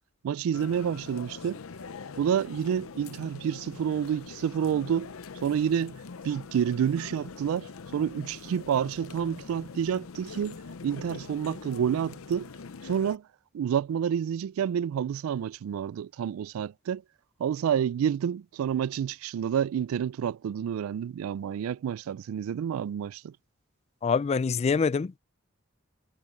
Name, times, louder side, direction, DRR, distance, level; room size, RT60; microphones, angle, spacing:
voice 1, 0.2-1.6 2.2-5.1 5.4-6.0 6.2-12.5 12.8-13.2 13.5-17.0 17.4-23.3, right 8 dB, 80° right, 0.3 m, -29 dB
sound 1, 0.5-13.2, left 4 dB, 85° left, 0.7 m, -43 dB
voice 2, 24.0-25.2, left 5 dB, 30° left, 0.3 m, -25 dB
head